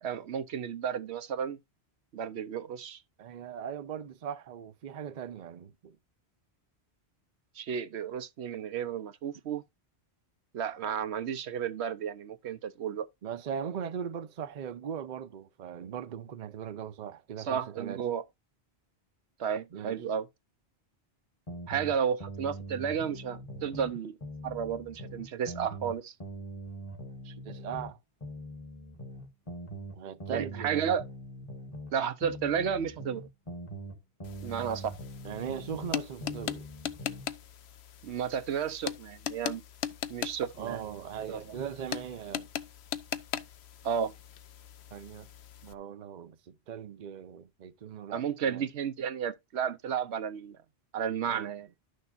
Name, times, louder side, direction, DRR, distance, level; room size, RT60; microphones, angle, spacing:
voice 1, 0.0-1.6 2.1-3.0 7.6-9.6 10.5-13.1 17.4-18.2 19.4-20.3 21.7-24.2 24.4-26.1 30.3-31.0 31.9-33.3 34.4-34.9 38.0-39.6 40.1-40.8 41.3-41.4 43.8-44.1 48.1-50.6 50.9-51.7, right 8 dB, 85° right, 1.0 m, -32 dB
voice 2, 3.2-6.0 13.2-18.0 19.7-20.0 23.5-23.6 27.2-28.0 29.9-30.9 35.2-36.7 40.6-42.5 44.9-45.3 45.6-48.7 51.3-51.5, right 8 dB, 50° right, 0.7 m, -39 dB
sound 1, 21.5-23.9 24.2-27.9 28.2-31.9 32.2-35.9 36.2-37.3, right 1 dB, 30° left, 1.4 m, -42 dB
sound 2, 34.2-45.7, left 9 dB, 80° left, 0.9 m, -40 dB
12.0 x 6.5 x 2.6 m
omnidirectional pair, 1.1 m